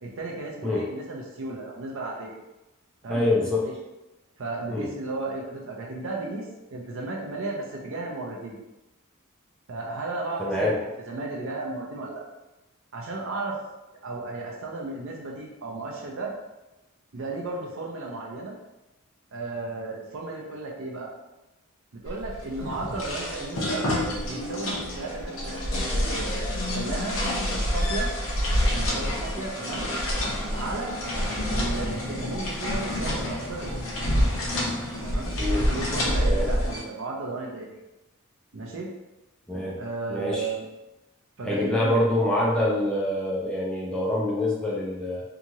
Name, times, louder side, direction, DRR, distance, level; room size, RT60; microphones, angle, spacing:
voice 1, 0.0-2.4 3.0-3.7 4.4-8.6 9.7-12.3 12.9-13.6 14.0-16.3 17.1-18.5 19.3-21.1 21.9-23.9 24.2-27.2 27.5-28.1 28.7-29.9 30.5-30.9 31.5-33.9 35.0-35.3 35.7-37.8 38.5-38.9 39.8-40.7 41.4-42.0, right 2 dB, 65° right, -1 dB, 0.6 m, -34 dB
voice 2, 3.1-3.7 4.7-4.9 10.4-10.8 35.4-35.7 36.2-36.5 39.5-39.8 40.1-40.5 41.5-45.2, left 1 dB, 5° left, -5 dB, 0.5 m, -25 dB
sound 1, 22.1-36.8, equal, 65° left, 0.8 m, -27 dB
2.9 x 2.4 x 2.7 m, 1.0 s
head